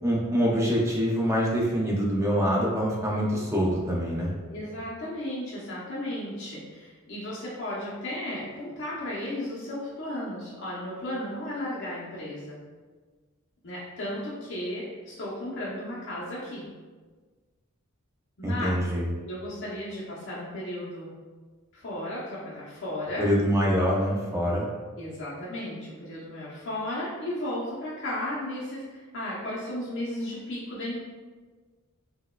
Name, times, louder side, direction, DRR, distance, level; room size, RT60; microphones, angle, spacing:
voice 1, 0.0-4.3 18.4-19.1 23.2-24.6, equal, 15° right, -3 dB, 0.4 m, -25 dB
voice 2, 4.5-12.6 13.6-16.7 18.4-18.8 19.2-21.1 21.7-23.3 25.0-31.0, left 1 dB, 60° left, -8 dB, 0.7 m, -34 dB
4.4 x 2.1 x 2.2 m, 1.4 s
head